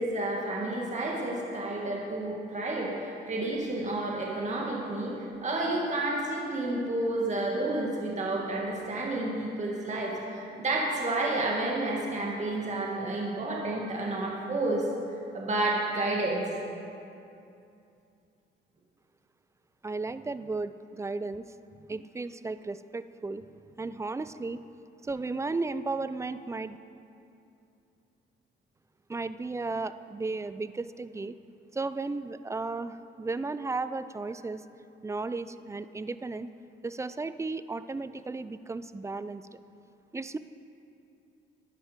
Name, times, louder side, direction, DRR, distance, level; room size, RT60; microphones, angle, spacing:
voice 1, 0.0-14.9 15.3-16.4, right 2 dB, 35° right, -3 dB, 2.0 m, -30 dB
voice 2, 19.8-24.6 25.0-26.8 29.1-31.4 31.7-34.6 35.0-36.5 36.8-39.6 40.1-40.4, right 3 dB, 15° right, 13 dB, 0.4 m, -35 dB
11.5 x 10.0 x 5.1 m, 2.7 s
cardioid pair, 90°, 20 cm